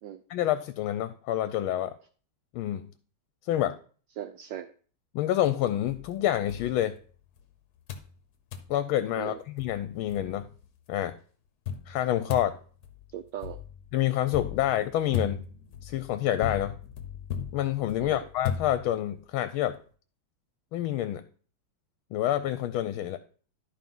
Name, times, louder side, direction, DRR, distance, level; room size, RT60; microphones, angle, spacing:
voice 1, 0.3-1.9 2.5-2.9 3.5-3.8 5.1-6.9 8.7-10.5 10.9-11.1 11.9-12.5 13.9-15.4 15.8-16.8 17.5-19.8 20.7-21.2 22.1-23.2, left 12 dB, 80° left, 12 dB, 1.4 m, -28 dB
voice 2, 4.2-4.7 9.2-9.4 13.1-13.6 18.0-18.2, right 11 dB, 75° right, 10 dB, 1.1 m, -38 dB
sound 1, 5.9-7.4 7.9-8.2 8.5-8.8 9.3-9.4 9.6-10.7 11.7-19.2, left 8 dB, 55° left, 1.3 m, -37 dB
11.5 x 4.6 x 5.4 m, 0.43 s
omnidirectional pair, 2.3 m